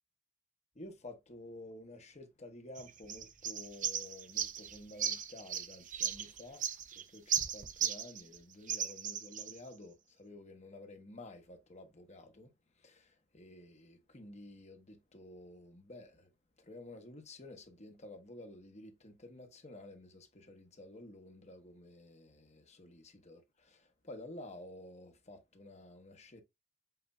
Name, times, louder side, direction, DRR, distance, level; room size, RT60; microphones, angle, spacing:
voice 1, 0.7-16.3 16.6-26.4, left 1 dB, 30° left, 1.1 m, -52 dB
sound 1, 2.8-8.4 8.7-9.6, right 8 dB, 35° right, 0.6 m, -36 dB
7.7 x 2.7 x 2.3 m
head